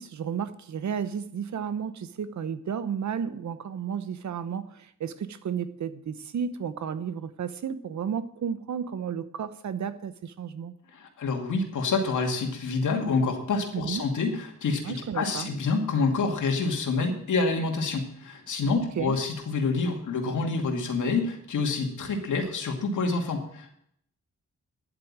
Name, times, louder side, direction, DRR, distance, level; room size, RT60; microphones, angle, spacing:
voice 1, 0.0-10.7 13.7-14.1 14.8-15.5 18.7-19.2, right 7 dB, 70° right, 12 dB, 1.0 m, -33 dB
voice 2, 10.9-23.7, left 4 dB, 85° left, 3 dB, 2.5 m, -27 dB
11.0 x 8.0 x 8.9 m, 0.69 s
cardioid pair, 95°, 29 cm